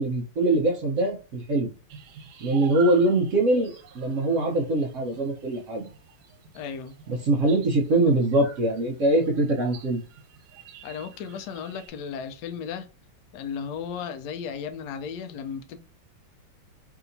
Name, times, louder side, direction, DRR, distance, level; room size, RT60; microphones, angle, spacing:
voice 1, 0.0-1.7 2.4-5.8 7.1-10.0, right 2 dB, 70° right, 0.7 m, -23 dB
sound 1, 1.9-11.9, right 8 dB, 85° right, 1.6 m, -46 dB
voice 2, 6.5-6.9 10.8-12.9 13.3-15.8, left 7 dB, 80° left, 0.8 m, -35 dB
3.3 x 2.8 x 2.6 m
omnidirectional pair, 2.2 m